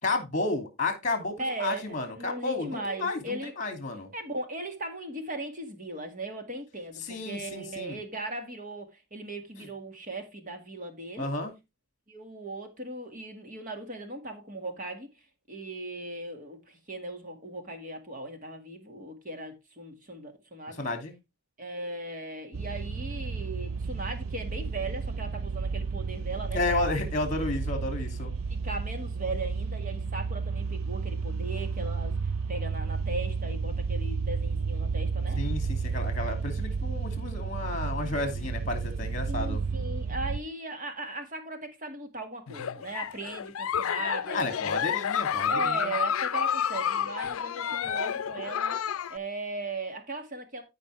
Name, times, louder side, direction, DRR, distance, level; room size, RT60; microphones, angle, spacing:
voice 1, 0.0-4.1 7.0-8.0 11.2-11.5 20.8-21.1 26.5-28.3 35.4-39.6 44.3-45.9, left 2 dB, 35° left, 2.7 m, -32 dB
voice 2, 1.4-3.5 4.1-11.3 12.1-15.1 15.5-20.9 21.6-27.0 28.5-35.4 39.3-44.5 45.5-48.8 49.1-50.6, right 2 dB, 40° right, 2.0 m, -38 dB
sound 1, 22.5-40.4, right 5 dB, 75° right, 0.5 m, -32 dB
Giggle, 42.5-49.2, left 8 dB, 85° left, 0.5 m, -30 dB
14.0 x 5.2 x 3.4 m
head